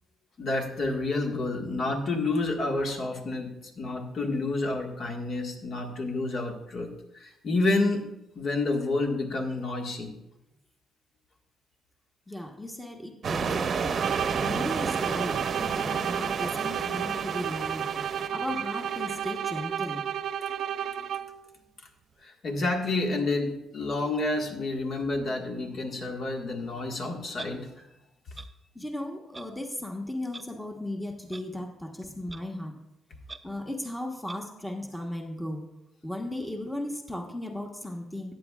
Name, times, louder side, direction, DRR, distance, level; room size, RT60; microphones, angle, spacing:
voice 1, 0.4-8.1 8.3-10.1 22.2-27.7, left 2 dB, 55° left, 2 dB, 1.7 m, -29 dB
voice 2, 12.3-17.9 18.3-20.1 28.7-32.7 33.4-35.7 36.0-38.3, left 1 dB, 5° left, 2 dB, 1.2 m, -36 dB
sound 1, 13.2-19.4, right 5 dB, 50° right, 0.7 m, -32 dB
sound 2, 14.0-21.5, right 9 dB, 70° right, 0.3 m, -32 dB
Clock, 27.4-27.5 28.3-28.5 29.3-29.5 30.3-30.4 31.3-31.4 32.3-32.4 33.3-33.4 34.3-34.4, right 3 dB, 20° right, 0.5 m, -42 dB
13.5 x 9.1 x 2.4 m, 0.87 s
cardioid pair, 90°, 0 cm